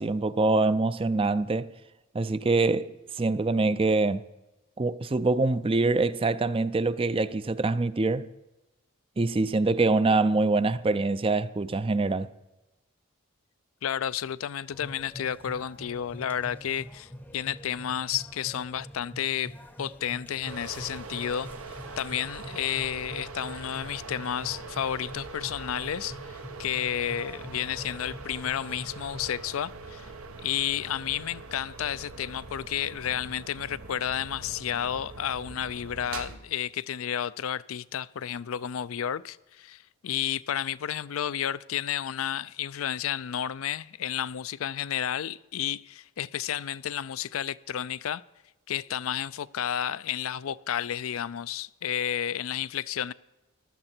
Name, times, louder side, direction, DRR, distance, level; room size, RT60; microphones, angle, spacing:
voice 1, 0.0-1.7 2.1-4.2 4.8-8.3 9.2-12.3, right 3 dB, 25° right, 0.4 m, -25 dB
voice 2, 13.8-19.5 19.8-30.1 30.4-48.2 48.7-53.1, left 9 dB, 75° left, 0.4 m, -31 dB
sound 1, 14.7-29.4, equal, 5° left, 0.7 m, -45 dB
sound 2, 20.4-36.4, right 3 dB, 85° right, 1.1 m, -43 dB
15.5 x 12.0 x 4.4 m
head